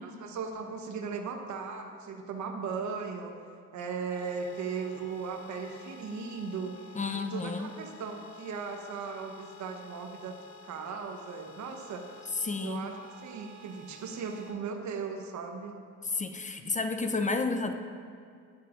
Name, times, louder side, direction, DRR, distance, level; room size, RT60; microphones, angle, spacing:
voice 1, 0.0-3.4 3.7-10.4 10.6-12.1 12.6-15.8, right 5 dB, 70° right, 4 dB, 1.1 m, -37 dB
sound 1, 4.1-14.5, left 3 dB, 15° right, 2.1 m, -52 dB
voice 2, 7.0-7.7 12.4-12.9 16.0-17.7, left 3 dB, 25° left, 6 dB, 0.6 m, -31 dB
12.0 x 10.5 x 2.5 m, 2.3 s
cardioid pair, 90°, 30 cm